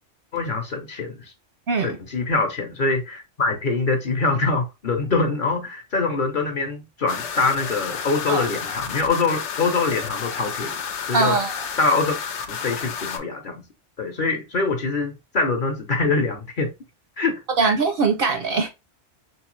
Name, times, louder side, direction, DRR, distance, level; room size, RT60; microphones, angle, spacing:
voice 1, 0.3-1.3 1.8-10.8 11.1-11.4 11.8-12.1 12.5-13.6 14.0-16.7 17.2-17.7, left 3 dB, 50° left, 0.9 m, -24 dB
sound 1, 7.1-13.2, left 7 dB, 75° left, 0.9 m, -31 dB
voice 2, 11.1-11.5 17.6-18.7, right 4 dB, 60° right, 0.7 m, -21 dB
3.2 x 3.2 x 3.1 m
omnidirectional pair, 1.2 m